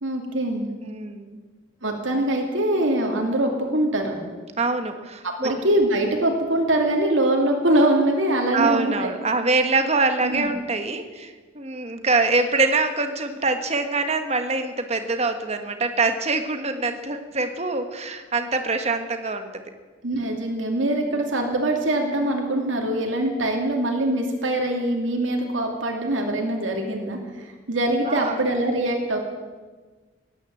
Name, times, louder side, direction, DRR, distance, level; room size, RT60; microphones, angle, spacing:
voice 1, 0.0-0.7 1.8-4.3 5.4-9.1 10.2-10.5 20.0-27.2 27.7-29.2, right 1 dB, 90° right, 1 dB, 2.6 m, -23 dB
voice 2, 0.8-1.4 4.6-5.5 8.5-19.5 21.1-21.3 28.1-28.4, right 3 dB, 35° right, 7 dB, 1.4 m, -24 dB
17.5 x 10.5 x 7.8 m, 1.4 s
head